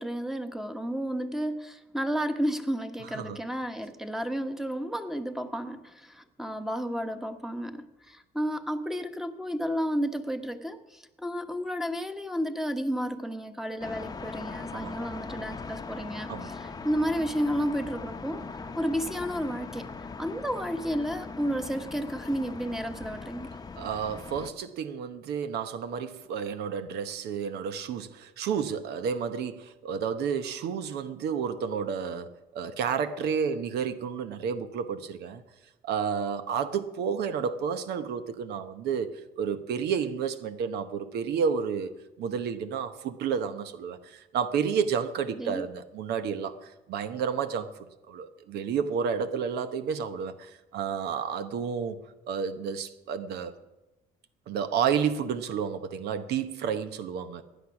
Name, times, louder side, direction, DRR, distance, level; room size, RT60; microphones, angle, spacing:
voice 1, 0.0-18.4 18.8-19.9 20.2-23.5 45.3-45.7, equal, ahead, 1.1 m, -32 dB
sound 1, 13.8-24.5, left 4 dB, 25° left, 0.8 m, -40 dB
voice 2, 23.8-35.4 35.8-41.9 42.2-47.7 48.1-52.0 52.3-53.6 54.5-57.4, right 7 dB, 75° right, 1.0 m, -31 dB
16.0 x 10.0 x 5.9 m
cardioid pair, 110°, 17 cm